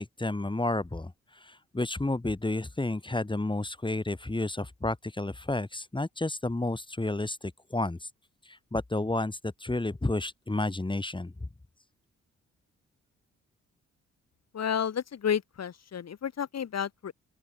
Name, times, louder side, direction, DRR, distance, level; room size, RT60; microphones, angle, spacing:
voice 1, 0.0-8.1 8.5-11.5, left 2 dB, 15° left, 3.6 m, -31 dB
voice 2, 14.5-17.1, left 8 dB, 60° left, 2.6 m, -31 dB
open air
cardioid pair, 75°, 29 cm